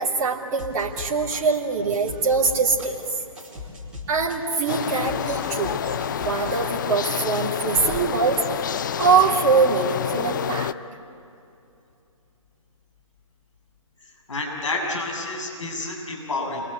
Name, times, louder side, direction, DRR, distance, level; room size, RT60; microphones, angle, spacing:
voice 1, 0.0-3.2 4.1-5.9 6.2-8.5 9.0-10.7, right 4 dB, 30° right, -5 dB, 3.1 m, -23 dB
sound 1, 0.6-1.6 1.9-6.6, left 3 dB, 5° right, 4.7 m, -39 dB
sound 2, 4.7-10.7, left 9 dB, 35° left, 0.6 m, -28 dB
voice 2, 14.3-16.6, left 2 dB, 65° left, 0 dB, 7.6 m, -29 dB
29.0 x 23.5 x 8.6 m, 2.6 s
figure-of-eight pair, 140°, 17 cm